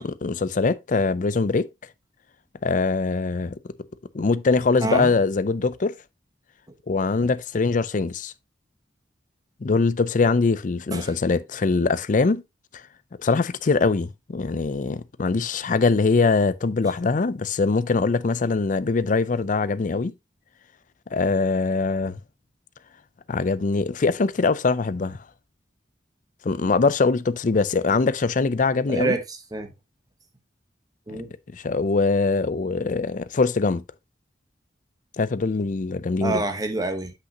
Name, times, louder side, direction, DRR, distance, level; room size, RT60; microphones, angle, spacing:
voice 1, 0.0-1.7 2.6-3.6 4.1-5.9 6.9-8.3 9.6-12.4 13.2-20.1 21.1-22.2 23.3-25.2 26.4-29.1 31.1-31.2 31.5-33.8 35.2-36.4, left 4 dB, 45° left, 0.5 m, -22 dB
voice 2, 4.8-5.1 7.2-7.3 10.9-11.1 16.9-17.0 28.9-29.7 31.1-31.3 36.2-37.1, right 2 dB, 20° right, 1.1 m, -27 dB
8.1 x 5.6 x 2.8 m
head